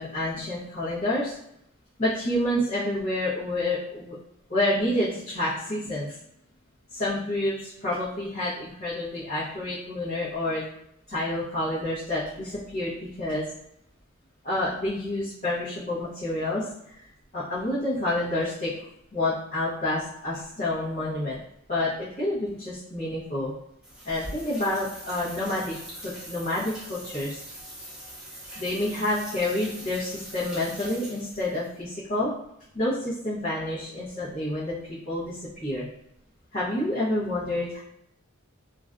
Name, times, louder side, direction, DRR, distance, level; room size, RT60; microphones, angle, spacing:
voice 1, 0.0-1.3 2.0-4.2 4.5-6.1 6.9-10.6 11.1-13.4 14.4-17.0 17.3-18.7 19.1-21.4 21.7-23.5 24.0-25.8 26.0-27.4 28.6-32.3 32.7-35.9 36.5-37.8, left 1 dB, 35° left, -11 dB, 0.7 m, -28 dB
sound 1, 23.8-31.7, right 1 dB, 5° right, 0.6 m, -42 dB
2.4 x 2.2 x 2.4 m, 0.77 s
head